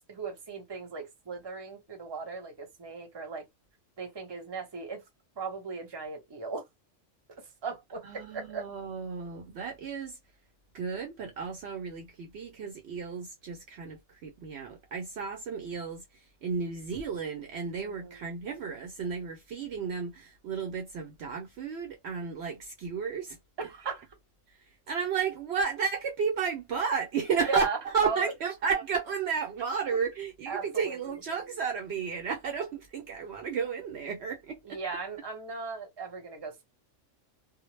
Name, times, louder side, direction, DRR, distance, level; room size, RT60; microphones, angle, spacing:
voice 1, 0.1-3.5 4.0-5.0 5.4-6.7 7.6-8.7 17.8-18.2 23.6-24.1 27.5-28.3 29.9-30.0 30.5-31.2 34.6-36.6, right 4 dB, 25° right, 0.7 m, -37 dB
voice 2, 8.0-10.2 10.7-16.0 16.4-23.4 24.9-34.8, right 6 dB, 65° right, 0.7 m, -33 dB
2.1 x 2.0 x 3.1 m
omnidirectional pair, 1.3 m